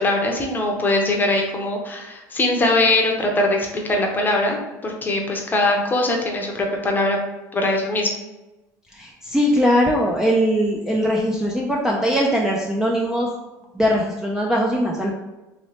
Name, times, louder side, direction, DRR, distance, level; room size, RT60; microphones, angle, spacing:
voice 1, 0.0-7.2 7.5-8.1, left 2 dB, 20° left, 1 dB, 0.7 m, -21 dB
voice 2, 8.9-13.3 13.7-15.1, equal, 5° right, -2 dB, 0.4 m, -20 dB
3.0 x 3.0 x 2.9 m, 1.1 s
supercardioid pair, 110°, 9 cm